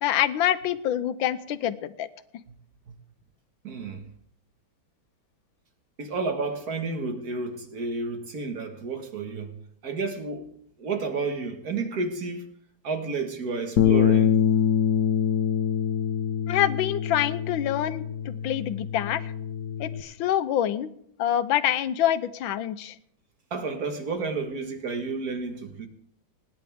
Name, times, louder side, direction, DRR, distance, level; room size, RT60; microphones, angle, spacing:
voice 1, 0.0-2.1 16.5-19.3 19.8-20.9 21.2-23.0, left 11 dB, 80° left, 1.5 m, -26 dB
voice 2, 3.6-4.0 6.0-9.5 9.8-10.5 10.8-12.4 12.8-14.4 23.5-25.9, right 4 dB, 50° right, 2.0 m, -31 dB
Bass guitar, 13.8-20.0, left 9 dB, 65° left, 1.4 m, -25 dB
24.5 x 10.5 x 3.6 m
omnidirectional pair, 2.1 m